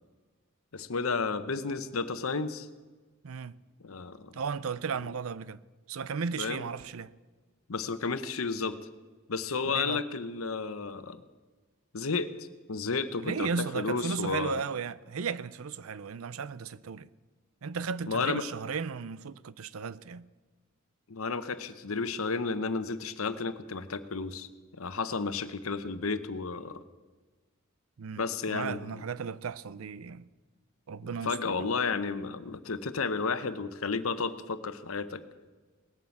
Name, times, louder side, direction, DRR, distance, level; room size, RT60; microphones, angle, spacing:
voice 1, 0.7-2.7 3.8-4.3 6.4-6.6 7.7-8.8 9.3-11.2 11.9-14.6 18.1-18.4 21.1-24.5 24.7-26.8 28.2-29.0 31.2-35.2, left 4 dB, 85° left, 0.9 m, -32 dB
voice 2, 4.3-5.6 5.9-7.1 9.6-10.0 13.2-17.1 17.6-20.2 28.0-30.3 30.9-31.7, right 5 dB, 85° right, 0.5 m, -35 dB
18.5 x 9.4 x 7.2 m
head